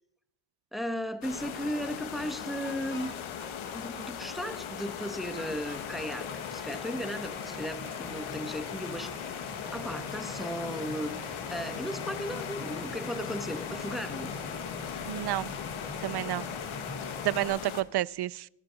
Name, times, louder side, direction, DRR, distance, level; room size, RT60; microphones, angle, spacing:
voice 1, 0.7-3.1 3.7-14.3, equal, ahead, 1.2 m, -36 dB
sound 1, 1.2-17.8, left 8 dB, 70° left, 1.8 m, -39 dB
Laughter, 2.4-4.8 5.3-7.3, left 2 dB, 20° left, 2.9 m, -49 dB
sound 2, 3.8-17.4, left 3 dB, 50° left, 4.3 m, -42 dB
voice 2, 15.1-15.5 16.0-16.5 17.2-18.5, right 14 dB, 55° right, 0.5 m, -30 dB
25.5 x 10.5 x 5.2 m
cardioid pair, 140°, 49 cm